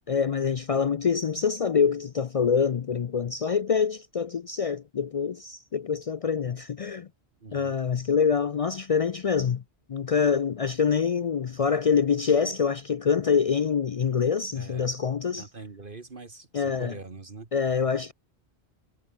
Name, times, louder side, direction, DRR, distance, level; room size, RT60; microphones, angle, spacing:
voice 1, 0.1-7.1 7.5-9.6 9.9-15.5 16.5-17.0 17.5-18.1, left 6 dB, 50° left, 0.4 m, -25 dB
voice 2, 7.4-7.8 14.5-14.9 15.4-17.5, right 3 dB, 50° right, 1.9 m, -43 dB
omnidirectional pair, 1.1 m